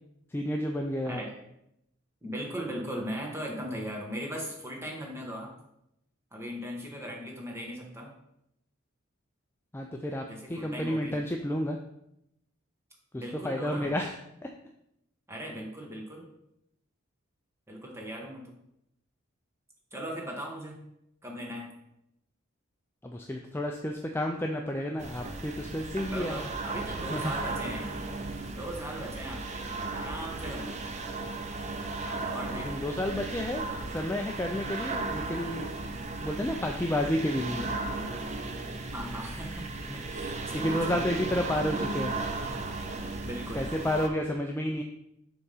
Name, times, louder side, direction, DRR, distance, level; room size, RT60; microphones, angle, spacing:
voice 1, 0.3-1.2 9.7-11.8 13.1-14.2 14.4-14.5 23.0-26.5 27.1-27.4 32.5-35.7 36.2-37.7 39.9-40.0 40.3-42.2 43.5-44.8, left 1 dB, 10° left, 2 dB, 0.3 m, -31 dB
voice 2, 1.1-1.4 2.2-5.5 6.3-8.1 10.3-11.2 13.2-13.9 15.3-16.3 17.7-18.5 19.9-20.8 21.2-21.7 26.1-28.1 28.5-30.8 32.3-32.8 38.9-41.0 43.2-43.7, equal, 10° right, -1 dB, 1.2 m, -38 dB
sound 1, 25.0-44.1, right 3 dB, 30° right, 0.6 m, -35 dB
6.8 x 3.6 x 5.5 m, 0.80 s
head